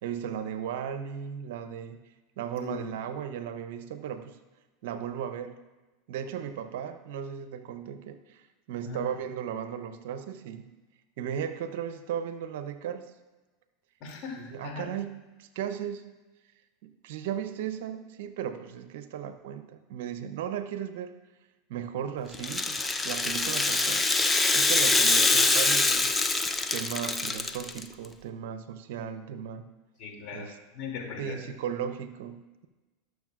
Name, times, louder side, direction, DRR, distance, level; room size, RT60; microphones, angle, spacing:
voice 1, 0.0-2.0 2.4-4.4 4.8-5.6 6.1-8.4 8.7-10.7 11.2-13.1 14.5-16.1 16.8-21.1 21.7-22.8 23.0-26.2 26.7-29.7 30.3-30.5 31.2-32.7, right 8 dB, 70° right, 10 dB, 0.7 m, -36 dB
voice 2, 14.0-14.9 30.0-31.4, left 5 dB, 50° left, 0 dB, 2.6 m, -39 dB
Rattle (instrument), 22.3-27.8, left 3 dB, 15° left, 0.7 m, -24 dB
19.0 x 6.4 x 2.5 m, 1.2 s
hypercardioid pair, 85°, 0 cm